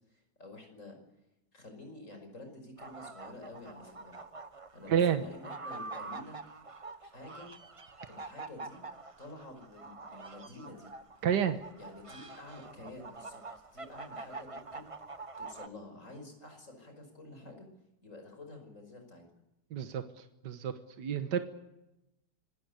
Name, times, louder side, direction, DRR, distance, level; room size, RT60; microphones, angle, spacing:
voice 1, 0.1-1.0 1.5-4.2 4.7-6.4 7.0-7.5 8.1-8.8 9.2-10.9 11.8-13.4 13.7-15.1 15.4-17.7 18.0-19.2, left 2 dB, 45° left, 5 dB, 6.0 m, -49 dB
sound 1, 2.8-15.7, right 3 dB, 25° right, 1.0 m, -46 dB
voice 2, 4.9-5.2 11.2-11.6 19.7-20.0 20.4-21.4, right 8 dB, 75° right, 9 dB, 1.8 m, -29 dB
26.0 x 18.0 x 8.3 m, 0.92 s
omnidirectional pair, 1.8 m